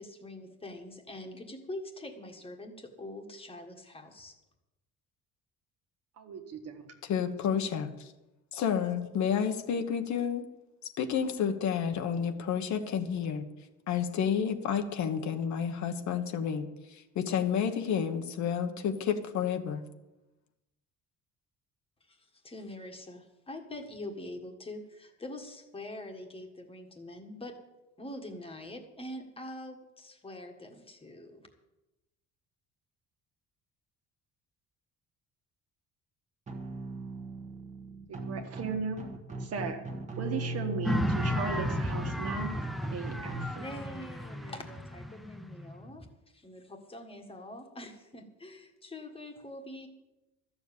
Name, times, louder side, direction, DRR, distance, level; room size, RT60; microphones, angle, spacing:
voice 1, 0.0-4.3 22.1-27.6 28.0-31.4 43.6-46.1 46.3-49.9, left 1 dB, 15° left, 4 dB, 1.6 m, -44 dB
voice 2, 6.2-6.9 38.1-39.0 39.4-39.8 40.2-42.6 42.9-43.7, right 5 dB, 45° right, 5 dB, 1.6 m, -37 dB
voice 3, 7.0-8.1 8.5-10.5 11.0-13.5 13.9-16.7 17.1-19.8, left 7 dB, 60° left, 7 dB, 1.2 m, -30 dB
sound 1, 36.5-43.4, right 2 dB, 20° right, 1.5 m, -39 dB
sound 2, 40.8-46.1, equal, ahead, 0.5 m, -33 dB
13.5 x 7.2 x 8.4 m, 0.98 s
cardioid pair, 170°, 33 cm